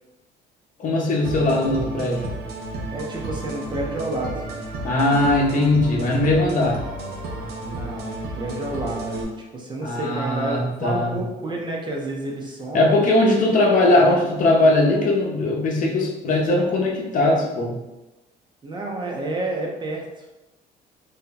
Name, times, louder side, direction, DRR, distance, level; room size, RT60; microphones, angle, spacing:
voice 1, 0.8-2.4 4.8-6.8 9.8-11.2 12.7-17.8, left 2 dB, 50° left, -1 dB, 0.8 m, -20 dB
sound 1, 1.2-9.2, right 1 dB, 75° right, 0.7 m, -32 dB
voice 2, 2.9-4.4 7.6-13.0 18.6-20.3, right 2 dB, 25° right, 0 dB, 0.6 m, -30 dB
2.8 x 2.2 x 3.9 m, 1.0 s
cardioid pair, 110°, 17 cm